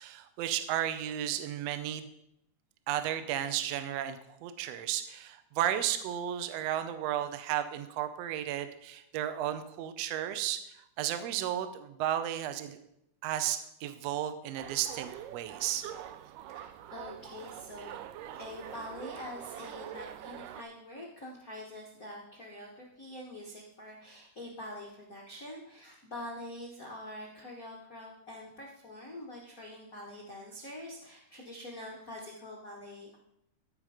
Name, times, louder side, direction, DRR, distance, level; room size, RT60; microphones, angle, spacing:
voice 1, 0.0-2.0 2.9-10.6 11.0-12.8 13.2-15.8, right 11 dB, 75° right, 10 dB, 1.6 m, -33 dB
sound 1, 14.6-20.6, right 11 dB, 90° right, 2.2 m, -44 dB
voice 2, 16.5-18.0 18.3-33.2, left 1 dB, 85° left, -1 dB, 0.7 m, -45 dB
13.5 x 5.2 x 4.9 m, 0.78 s
omnidirectional pair, 3.7 m